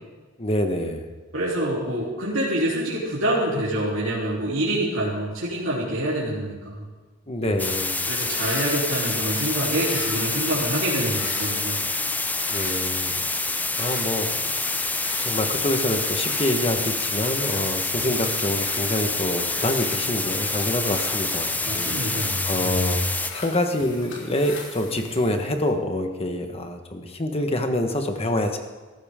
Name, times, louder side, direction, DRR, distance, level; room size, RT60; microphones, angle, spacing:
voice 1, 0.4-1.1 7.3-7.9 12.5-13.2 13.4-14.5 15.2-23.0 23.3-28.6, left 1 dB, 30° left, 5 dB, 1.4 m, -26 dB
voice 2, 1.3-6.8 7.4-7.6 8.1-11.8 21.7-23.1, right 1 dB, 75° right, -7 dB, 3.4 m, -26 dB
sound 1, 7.6-23.3, left 3 dB, 10° left, 0.6 m, -27 dB
sound 2, 8.1-25.7, left 3 dB, 65° left, 3.8 m, -40 dB
17.5 x 14.0 x 3.7 m, 1.4 s
head